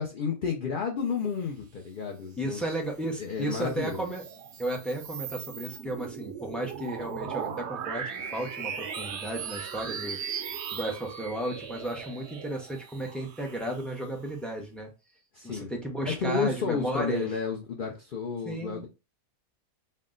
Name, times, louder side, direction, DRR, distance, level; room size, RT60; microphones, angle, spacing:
voice 1, 0.0-2.7 3.2-4.0 15.3-15.7 16.1-18.9, left 5 dB, 55° left, 0.6 m, -31 dB
voice 2, 2.4-4.2 4.6-10.2 10.7-14.9 15.4-17.3 18.4-18.9, right 1 dB, ahead, 0.4 m, -34 dB
sound 1, 3.4-14.3, right 7 dB, 65° right, 0.8 m, -38 dB
4.2 x 2.1 x 3.7 m
omnidirectional pair, 1.5 m